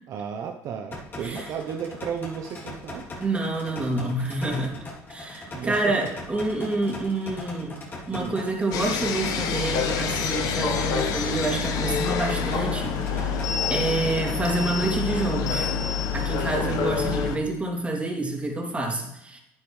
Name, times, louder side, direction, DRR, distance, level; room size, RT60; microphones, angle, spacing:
voice 1, 0.1-3.0 3.8-3.9 5.5-5.9 8.1-8.4 16.5-16.8, right 7 dB, 60° right, 4 dB, 0.9 m, -34 dB
sound 1, 0.9-14.9, left 2 dB, 35° left, 3.0 m, -40 dB
voice 2, 3.2-4.8 5.1-7.7 8.1-13.4 13.7-15.7 16.1-19.4, right 2 dB, 20° right, 0 dB, 2.9 m, -28 dB
sound 2, 8.7-17.4, left 6 dB, 65° left, 1.3 m, -27 dB
11.5 x 8.6 x 3.3 m, 0.83 s
supercardioid pair, 85°, 7 cm